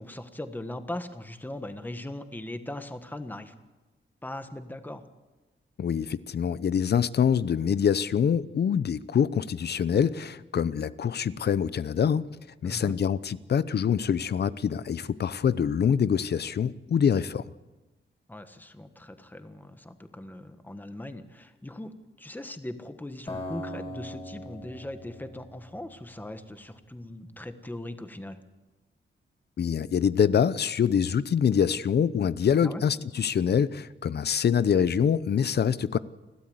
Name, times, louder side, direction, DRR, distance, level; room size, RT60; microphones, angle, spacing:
voice 1, 0.0-3.5 4.2-5.1 12.6-13.0 18.3-28.4 32.6-32.8, left 1 dB, 10° left, 9 dB, 1.4 m, -39 dB
voice 2, 5.8-12.3 12.6-17.4 29.6-36.0, left 7 dB, 55° left, 17 dB, 0.7 m, -25 dB
Acoustic guitar, 23.3-26.4, left 1 dB, 30° left, 5.4 m, -40 dB
29.5 x 12.5 x 8.0 m, 1.1 s
wide cardioid pair, 135°, 20 cm